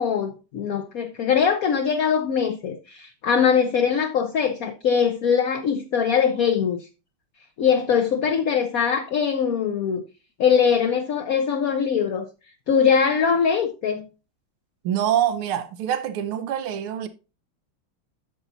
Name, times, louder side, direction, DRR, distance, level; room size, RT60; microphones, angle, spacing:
voice 1, 0.0-6.8 7.6-10.0 10.4-12.3 12.7-14.1, left 7 dB, 60° left, 0.9 m, -22 dB
voice 2, 14.8-17.1, right 10 dB, 85° right, 1.8 m, -25 dB
10.5 x 7.0 x 2.7 m
omnidirectional pair, 2.3 m